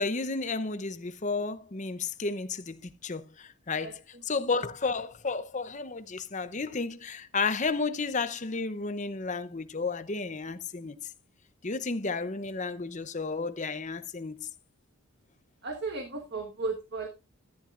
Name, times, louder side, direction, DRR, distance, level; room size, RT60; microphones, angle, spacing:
voice 1, 0.0-11.0 11.6-14.5, left 4 dB, 35° left, 0.7 m, -32 dB
voice 2, 15.6-17.1, right 3 dB, 50° right, 1.5 m, -34 dB
13.5 x 11.0 x 2.5 m
head